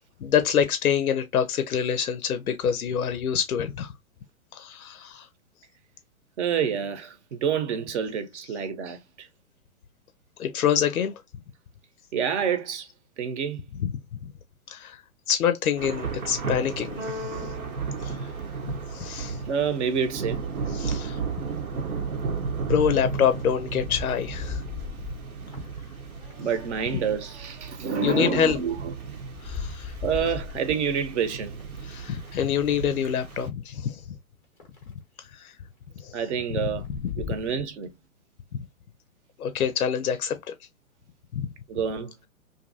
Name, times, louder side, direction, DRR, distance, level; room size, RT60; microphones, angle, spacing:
voice 1, 0.2-3.9 4.5-5.3 10.4-11.2 13.8-13.9 14.2-14.3 14.7-15.0 15.3-17.5 18.0-18.2 18.9-19.4 20.7-21.2 22.7-24.6 26.9-27.0 28.0-28.6 29.4-29.9 31.8-34.0 35.2-35.5 36.0-36.2 36.5-37.3 39.4-40.5 41.3-41.5, left 8 dB, 85° left, 0.6 m, -26 dB
voice 2, 6.4-9.0 12.1-12.9 13.2-13.6 19.5-20.4 26.4-28.9 30.0-31.5 36.1-36.8 37.2-37.9 41.7-42.1, right 7 dB, 55° right, 0.8 m, -28 dB
Thunder / Rain, 15.8-33.5, right 4 dB, 85° right, 0.9 m, -34 dB
Keyboard (musical), 17.0-19.1, left 3 dB, 30° right, 0.9 m, -40 dB
sound 1, 23.7-28.7 29.1-30.6 31.5-32.3 33.0-33.4 33.9-34.0 34.6-34.9 36.3-36.4 36.6-37.5, left 6 dB, 5° left, 0.4 m, -39 dB
2.7 x 2.5 x 2.5 m
hypercardioid pair, 120°, 42 cm